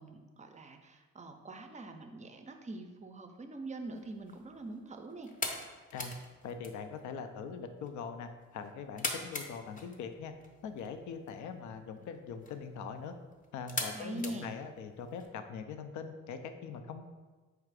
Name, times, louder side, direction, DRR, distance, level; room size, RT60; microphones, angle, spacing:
voice 1, 0.0-5.3 13.9-14.5, right 2 dB, 25° right, 6 dB, 0.5 m, -44 dB
sound 1, 3.9-15.2, left 2 dB, 25° left, 0.7 m, -44 dB
voice 2, 6.4-10.3 10.6-13.1 13.5-17.1, left 6 dB, 75° left, 8 dB, 0.5 m, -42 dB
4.6 x 2.4 x 4.7 m, 1.3 s
cardioid pair, 90°, 30 cm